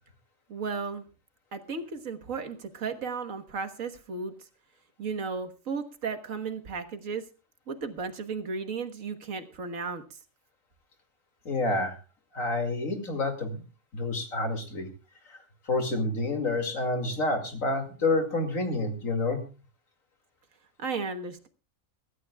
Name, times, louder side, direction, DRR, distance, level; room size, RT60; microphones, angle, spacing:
voice 1, 0.5-1.1 1.5-4.3 5.0-7.2 7.7-10.2 20.8-21.5, right 4 dB, 80° right, 7 dB, 1.8 m, -34 dB
voice 2, 11.4-12.0 12.3-13.6 13.9-14.9 15.3-15.4 15.7-19.4, left 2 dB, 90° left, 5 dB, 2.8 m, -28 dB
24.0 x 12.5 x 2.3 m, 0.32 s
omnidirectional pair, 1.4 m